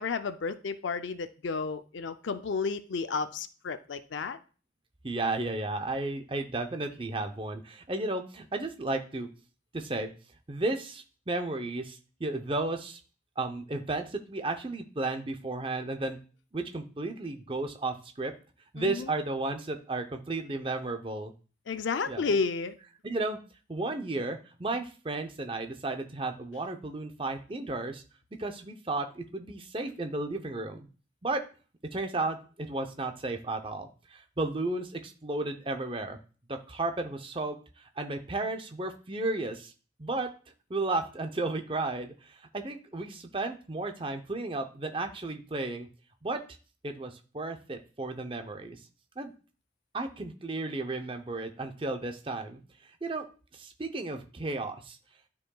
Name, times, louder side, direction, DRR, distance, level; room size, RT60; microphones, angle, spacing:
voice 1, 0.0-4.4 18.8-19.1 21.7-22.7, left 4 dB, 80° left, 11 dB, 0.5 m, -32 dB
voice 2, 5.0-9.3 9.7-10.1 10.5-13.0 13.4-16.2 16.5-18.3 18.7-21.3 22.1-22.2 23.0-23.4 23.7-28.0 28.4-30.9 31.2-31.4 31.9-36.2 36.5-39.7 40.0-40.3 40.7-45.9 46.2-46.4 46.8-48.8 49.2-49.3 49.9-52.6 53.0-53.3 53.5-55.0, right 2 dB, 30° right, 6 dB, 0.7 m, -33 dB
11.5 x 4.7 x 2.3 m, 0.37 s
head